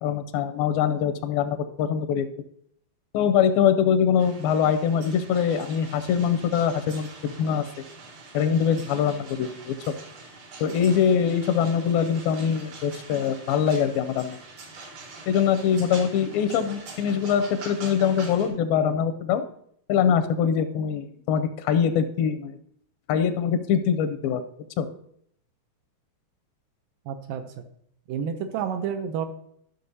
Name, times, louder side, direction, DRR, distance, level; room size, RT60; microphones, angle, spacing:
voice 1, 0.0-2.3 3.1-7.7 8.3-9.9 10.6-14.4 15.3-19.4 19.9-22.6 23.1-24.4 24.8-24.9, left 8 dB, 85° left, 10 dB, 2.3 m, -23 dB
sound 1, 4.2-18.5, right 3 dB, 65° right, 2.9 m, -44 dB
voice 2, 27.1-27.5 28.1-29.3, right 7 dB, 80° right, 7 dB, 2.1 m, -29 dB
13.0 x 6.3 x 2.7 m, 0.68 s
omnidirectional pair, 4.1 m